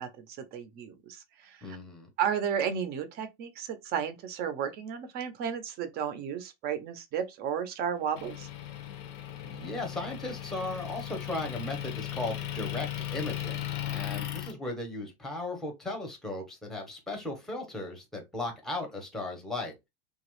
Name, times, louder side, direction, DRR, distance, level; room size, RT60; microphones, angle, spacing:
voice 1, 0.0-1.8 2.2-8.5, right 8 dB, 30° right, 0.6 m, -33 dB
voice 2, 1.6-2.1 9.4-19.7, left 2 dB, ahead, 0.8 m, -37 dB
Motor vehicle (road) / Engine, 8.2-14.5, left 12 dB, 40° left, 0.6 m, -37 dB
2.9 x 2.4 x 3.1 m
supercardioid pair, 140°, 30 cm